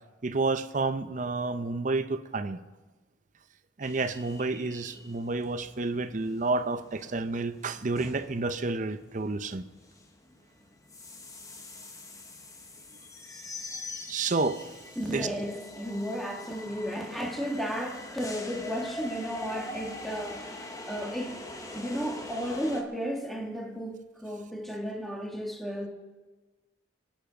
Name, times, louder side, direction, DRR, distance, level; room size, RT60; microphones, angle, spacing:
voice 1, 0.2-2.6 3.8-9.6 14.1-14.6 15.1-15.3, right 3 dB, 45° right, 0.7 m, -30 dB
sound 1, 3.8-22.8, left 2 dB, 20° left, 1.2 m, -44 dB
voice 2, 14.9-21.4 21.7-25.9, equal, ahead, 1.6 m, -34 dB
24.0 x 9.2 x 5.1 m
head